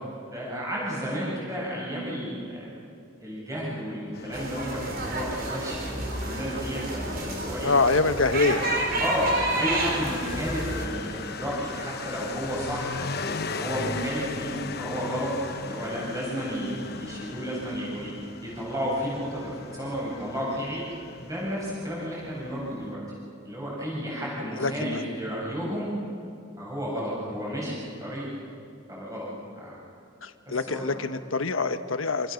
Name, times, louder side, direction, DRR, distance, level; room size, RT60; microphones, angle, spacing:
voice 1, 0.3-2.7 3.2-7.7 9.0-9.3 9.6-12.9 13.5-15.3 15.6-18.1 18.4-20.9 21.2-23.0 23.4-25.9 26.6-28.3 28.9-29.3 29.6-29.7 30.5-31.0, equal, 15° right, -5 dB, 7.7 m, -32 dB
Motorcycle, 4.1-22.9, left 4 dB, 50° left, 1.1 m, -38 dB
sound 1, 4.3-10.9, right 2 dB, 50° right, 4.2 m, -30 dB
voice 2, 7.6-8.6 24.6-25.0 30.2-32.3, left 3 dB, 85° left, 9 dB, 1.3 m, -25 dB
27.5 x 27.5 x 6.6 m, 2.5 s
head